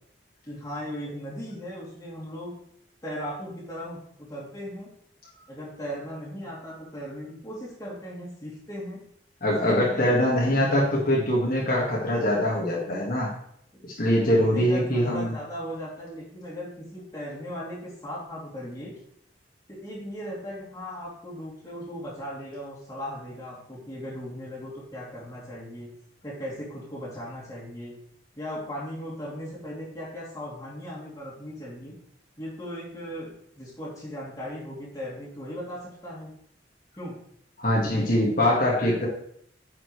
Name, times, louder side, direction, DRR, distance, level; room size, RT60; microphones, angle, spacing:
voice 1, 0.5-2.6 3.0-4.9 5.5-9.0 9.6-10.2 13.7-18.9 19.7-25.9 26.2-27.9 28.3-31.9 32.4-36.3 37.0-37.2, equal, 20° left, -6 dB, 2.9 m, -37 dB
voice 2, 9.4-13.3 14.0-15.3 37.6-39.1, left 1 dB, 50° left, -4 dB, 1.9 m, -23 dB
9.7 x 5.8 x 3.2 m, 0.69 s
head